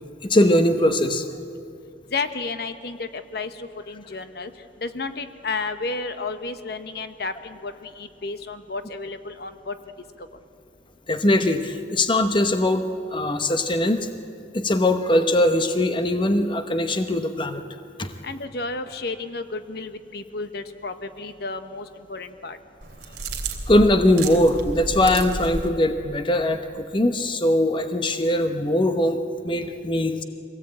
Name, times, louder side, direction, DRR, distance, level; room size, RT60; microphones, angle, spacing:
voice 1, 0.2-1.3 11.1-14.1 14.5-17.6 18.0-18.1 23.7-29.2 29.4-30.2, left 1 dB, 30° left, 8 dB, 0.9 m, -21 dB
voice 2, 2.1-4.5 4.8-9.8 10.2-10.3 18.2-22.6, left 3 dB, 60° left, 9 dB, 1.0 m, -32 dB
sound 1, 22.8-25.7, right 3 dB, 65° right, 3.1 m, -32 dB
23.5 x 17.5 x 8.7 m, 2.5 s
head